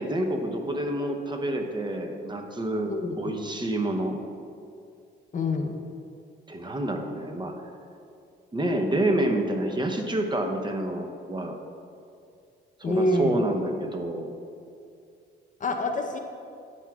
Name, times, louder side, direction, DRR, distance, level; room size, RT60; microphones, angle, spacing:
voice 1, 0.0-2.9 3.2-4.2 6.5-7.5 8.5-11.6 12.8-14.3, right 1 dB, 25° right, 3 dB, 0.8 m, -28 dB
voice 2, 2.9-3.3 5.3-5.8 12.8-13.4 15.6-16.2, left 2 dB, 40° left, 4 dB, 0.7 m, -26 dB
9.9 x 7.5 x 2.4 m, 2.4 s
cardioid pair, 90°, 20 cm